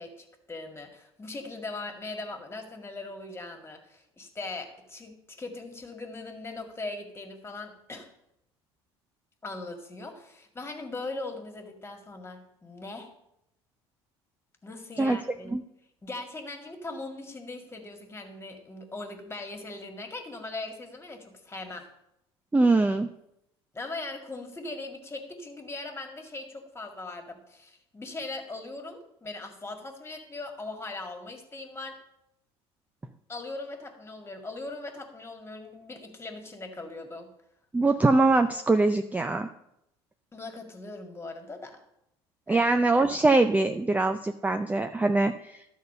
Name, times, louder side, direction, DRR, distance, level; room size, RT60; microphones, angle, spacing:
voice 1, 0.0-8.1 9.4-13.1 14.6-15.5 16.0-21.9 23.7-32.0 33.3-37.3 40.3-41.8 42.5-42.7, left 2 dB, 20° left, 4 dB, 2.0 m, -40 dB
voice 2, 22.5-23.1 37.7-39.5 42.5-45.6, right 2 dB, 10° right, 8 dB, 0.5 m, -23 dB
12.0 x 4.1 x 6.7 m, 0.82 s
hypercardioid pair, 75°, 13 cm